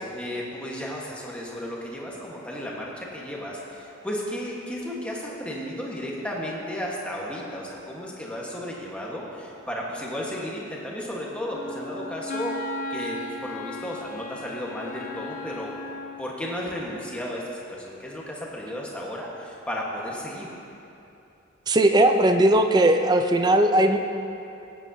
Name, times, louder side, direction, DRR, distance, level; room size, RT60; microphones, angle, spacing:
voice 1, 0.0-12.6 12.9-15.7 16.2-20.5, left 1 dB, 5° left, -4 dB, 1.3 m, -34 dB
Wind instrument woodwind instrument, 11.5-16.3, left 2 dB, 40° left, 0.5 m, -36 dB
voice 2, 21.7-24.0, right 1 dB, 20° right, 6 dB, 0.4 m, -18 dB
17.0 x 9.1 x 2.7 m, 2.9 s
head